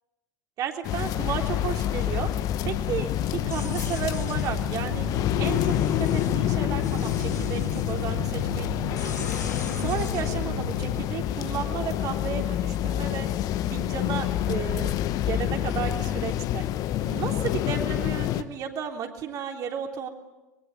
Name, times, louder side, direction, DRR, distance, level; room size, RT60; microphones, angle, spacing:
voice 1, 0.6-2.3 2.7-5.1 5.4-8.7 9.0-9.3 9.8-13.3 13.7-14.9 15.2-16.6 17.0-20.1, right 8 dB, 40° right, 4 dB, 3.4 m, -33 dB
sound 1, 0.8-18.4, left 12 dB, 40° left, 1.2 m, -27 dB
sound 2, 3.4-11.0, left 3 dB, 80° left, 2.8 m, -34 dB
24.0 x 22.5 x 10.0 m, 1.1 s
figure-of-eight pair, 75°, 9 cm